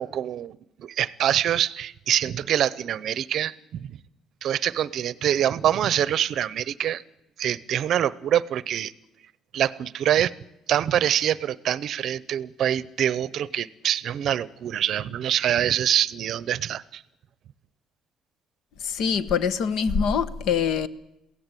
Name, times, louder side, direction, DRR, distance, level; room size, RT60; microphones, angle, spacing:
voice 1, 0.0-4.0 4.4-7.0 7.4-8.9 9.5-10.3 10.7-17.0, right 10 dB, 50° right, 20 dB, 0.7 m, -25 dB
voice 2, 18.8-20.9, left 6 dB, 65° left, 16 dB, 1.2 m, -24 dB
22.5 x 16.5 x 9.1 m, 0.88 s
cardioid pair, 160°, 0 cm